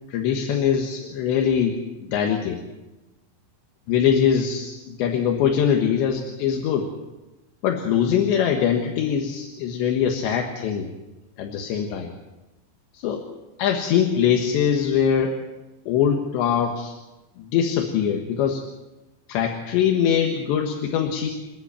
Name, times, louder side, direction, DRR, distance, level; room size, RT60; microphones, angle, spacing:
voice 1, 0.1-2.6 3.9-6.9 7.6-10.9 11.4-12.1 12.9-13.2 13.6-15.3 15.9-16.9 17.4-18.6 19.3-21.3, left 8 dB, 70° left, 2 dB, 3.4 m, -22 dB
29.0 x 10.5 x 8.8 m, 1.1 s
omnidirectional pair, 5.9 m